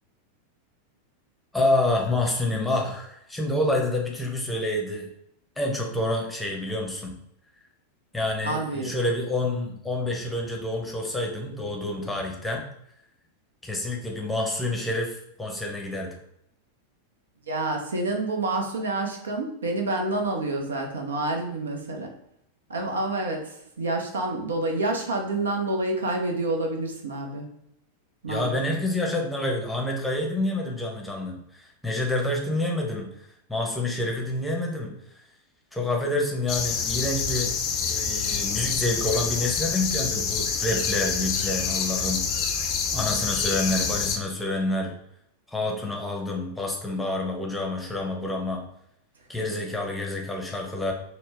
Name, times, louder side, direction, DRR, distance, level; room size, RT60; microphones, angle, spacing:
voice 1, 1.5-5.1 5.6-7.1 8.1-12.6 13.6-16.1 28.3-35.0 35.7-42.6 42.9-44.9 45.5-48.6 49.3-50.9, left 2 dB, 5° left, 0 dB, 0.7 m, -28 dB
voice 2, 8.4-8.9 17.5-22.1 22.7-27.5 28.2-28.6, right 2 dB, 70° right, 2 dB, 0.6 m, -28 dB
sound 1, 36.5-44.2, left 6 dB, 35° left, 0.5 m, -27 dB
4.1 x 2.1 x 3.3 m, 0.76 s
figure-of-eight pair, 90°, 0 cm